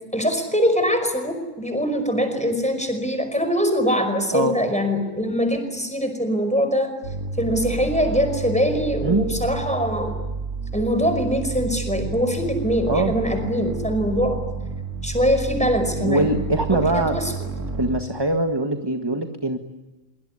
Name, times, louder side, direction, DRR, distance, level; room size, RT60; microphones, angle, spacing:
voice 1, 0.1-6.9 7.4-10.1 10.7-14.4 15.0-16.3 16.7-17.3, equal, 5° left, 7 dB, 5.3 m, -23 dB
sound 1, 7.0-18.0, right 4 dB, 70° right, 2.2 m, -30 dB
voice 2, 12.9-13.2 16.0-17.2 17.8-19.6, right 2 dB, 20° right, 5 dB, 1.7 m, -22 dB
25.0 x 24.0 x 9.7 m, 1.1 s
omnidirectional pair, 1.3 m